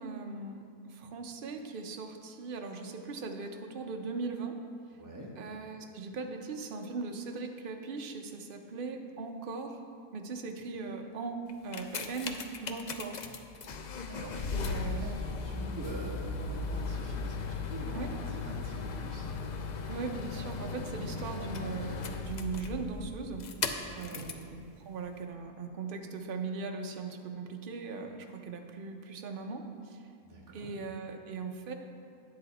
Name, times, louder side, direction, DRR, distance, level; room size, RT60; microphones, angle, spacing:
voice 1, 0.0-4.6 5.4-13.3 14.5-15.1 17.9-18.1 19.9-23.5 23.9-30.1 30.5-31.7, right 4 dB, 45° right, 4 dB, 0.8 m, -39 dB
voice 2, 5.0-5.3 14.1-19.3 23.9-24.3 30.2-30.7, right 1 dB, 15° right, -2 dB, 1.1 m, -44 dB
sound 1, 11.5-24.5 25.2-25.3, left 4 dB, 85° left, 0.4 m, -37 dB
10.0 x 7.7 x 4.2 m, 2.4 s
omnidirectional pair, 1.5 m